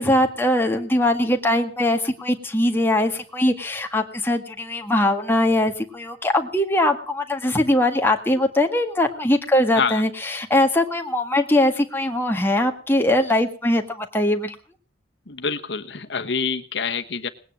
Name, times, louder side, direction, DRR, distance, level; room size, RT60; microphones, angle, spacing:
voice 1, 0.0-14.6, left 1 dB, 10° left, 3 dB, 1.7 m, -21 dB
voice 2, 15.3-17.3, left 5 dB, 65° left, 6 dB, 1.2 m, -26 dB
19.5 x 9.8 x 7.5 m, 0.41 s
head